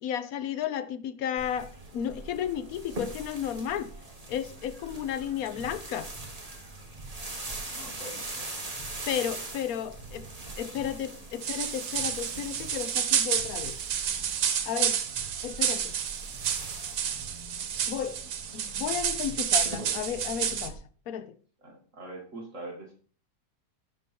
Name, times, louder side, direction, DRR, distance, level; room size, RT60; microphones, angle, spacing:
voice 1, 0.0-3.9 4.3-6.1 9.1-10.3 10.6-13.8 14.7-15.0 15.4-16.0 17.9-18.2 18.5-20.8 21.1-21.4, left 9 dB, 65° left, 1.1 m, -33 dB
sound 1, 1.4-20.7, right 2 dB, 20° right, 1.7 m, -42 dB
voice 2, 7.7-8.6 21.6-22.9, right 2 dB, 45° right, 2.3 m, -43 dB
sound 2, 11.4-20.7, right 8 dB, 85° right, 1.6 m, -30 dB
13.0 x 5.4 x 4.3 m
omnidirectional pair, 1.8 m